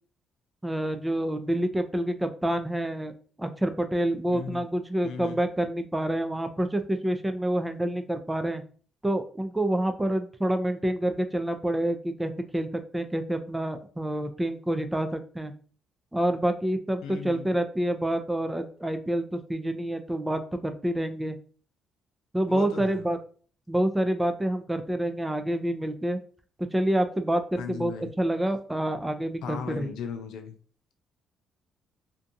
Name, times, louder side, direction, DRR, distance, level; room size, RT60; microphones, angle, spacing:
voice 1, 0.6-3.1 3.4-8.6 9.0-15.5 16.1-21.4 22.3-23.2 23.7-26.2 26.7-29.9, right 1 dB, 10° right, 8 dB, 0.4 m, -28 dB
voice 2, 4.3-4.6 5.0-5.4 17.0-17.5 22.5-23.1 27.6-28.1 29.4-30.6, left 6 dB, 90° left, 6 dB, 0.4 m, -37 dB
2.6 x 2.3 x 2.5 m, 0.43 s
cardioid pair, 90°, 0 cm